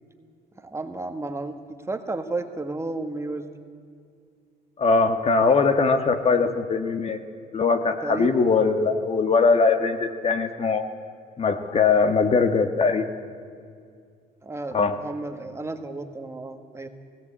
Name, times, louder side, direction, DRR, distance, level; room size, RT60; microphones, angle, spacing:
voice 1, 0.6-1.6 1.9-3.5 8.0-8.5 14.4-16.9, right 2 dB, 15° right, 7 dB, 1.4 m, -32 dB
voice 2, 4.8-7.2 7.5-10.8 11.4-13.1 14.7-15.0, left 4 dB, 35° left, 8 dB, 1.4 m, -21 dB
17.5 x 17.5 x 8.6 m, 2.2 s
cardioid pair, 110°, 17 cm